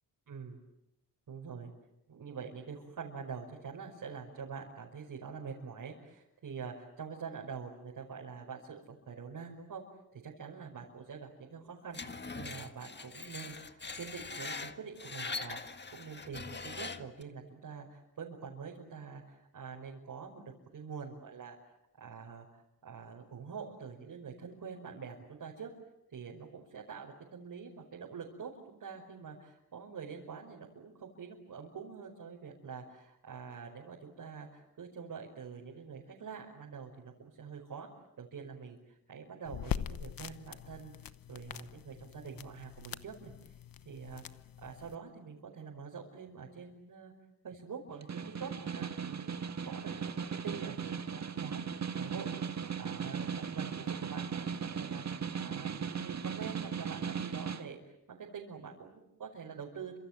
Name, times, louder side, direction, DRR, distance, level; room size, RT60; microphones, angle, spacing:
voice 1, 0.3-0.6 1.3-1.7 2.1-9.8 10.1-20.4 20.7-21.6 22.0-25.7 26.1-37.9 38.2-43.3 43.9-44.2 44.6-47.1 47.4-60.0, right 6 dB, 65° right, -1 dB, 5.4 m, -46 dB
Screech, 11.9-17.2, left 4 dB, 30° left, 1.7 m, -42 dB
sound 1, 39.4-44.9, left 9 dB, 65° left, 1.1 m, -43 dB
Snare drum, 47.9-57.7, right 7 dB, 45° right, 1.7 m, -37 dB
29.5 x 26.5 x 7.6 m, 0.86 s
cardioid pair, 100°, 37 cm